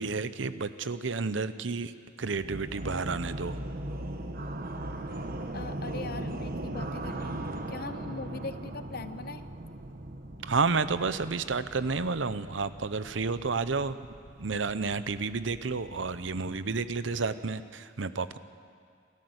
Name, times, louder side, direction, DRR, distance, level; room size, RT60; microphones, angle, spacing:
voice 1, 0.0-1.9 2.2-3.6 10.4-14.0 14.4-18.4, right 4 dB, 80° right, 13 dB, 0.8 m, -31 dB
sound 1, 2.3-17.2, right 1 dB, 50° right, 1.3 m, -39 dB
voice 2, 5.5-7.3 7.7-9.4, left 3 dB, 55° left, 11 dB, 0.9 m, -40 dB
28.5 x 13.5 x 8.1 m, 2.2 s
head